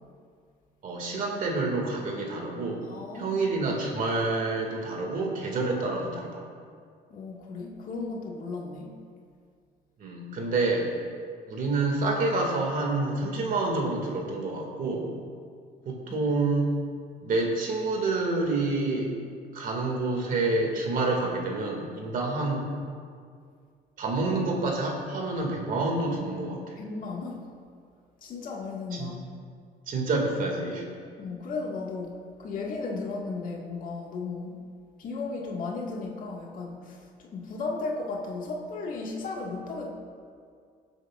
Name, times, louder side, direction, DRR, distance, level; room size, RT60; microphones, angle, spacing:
voice 1, 0.8-2.9 3.1-6.4 10.0-10.9 11.5-15.1 15.9-16.7 17.2-19.1 19.5-22.7 24.0-26.8 28.9-29.1 29.9-30.8, right 3 dB, 55° right, 0 dB, 2.2 m, -28 dB
voice 2, 2.8-3.4 7.1-8.9 16.1-16.2 26.8-27.5 28.2-29.3 31.2-34.6 35.0-39.9, left 3 dB, 55° left, -2 dB, 1.8 m, -35 dB
19.0 x 8.1 x 2.5 m, 2.2 s
cardioid pair, 110°, 17 cm